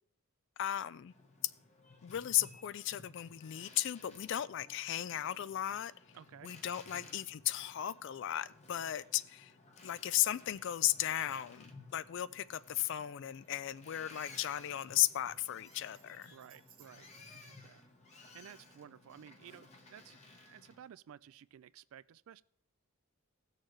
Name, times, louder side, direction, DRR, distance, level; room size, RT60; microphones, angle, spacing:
voice 1, 0.6-1.1 1.4-1.5 2.0-5.9 6.4-9.5 9.8-16.3, left 12 dB, 55° left, 0.3 m, -35 dB
Boat Water vehicle, 1.0-20.9, left 3 dB, 30° left, 1.0 m, -58 dB
voice 2, 6.1-6.5 6.9-7.1 16.2-17.8 18.1-20.2 20.5-22.4, right 9 dB, 70° right, 0.3 m, -55 dB
Tambourine, 12.2-17.2, right 9 dB, 40° right, 1.2 m, -68 dB
17.0 x 6.6 x 3.2 m
head